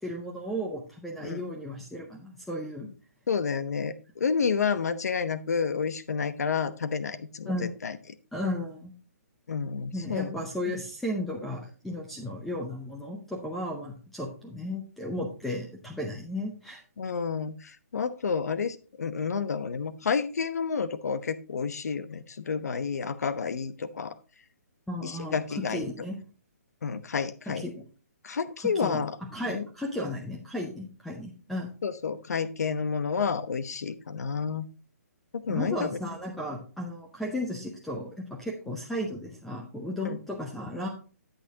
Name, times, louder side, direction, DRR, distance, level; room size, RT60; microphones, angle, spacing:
voice 1, 0.0-2.9 7.5-7.7 8.3-8.9 9.9-16.8 24.9-26.2 27.5-27.8 28.7-29.0 29.3-31.7 35.5-40.9, left 1 dB, ahead, 0 dB, 0.7 m, -34 dB
voice 2, 3.3-8.0 9.5-10.4 17.0-24.1 25.0-25.9 26.8-27.6 28.2-29.2 29.5-29.6 31.8-34.7 35.3-36.0 40.0-40.2, left 5 dB, 70° left, 13 dB, 1.0 m, -30 dB
9.9 x 8.5 x 2.8 m, 0.37 s
hypercardioid pair, 165°, 9 cm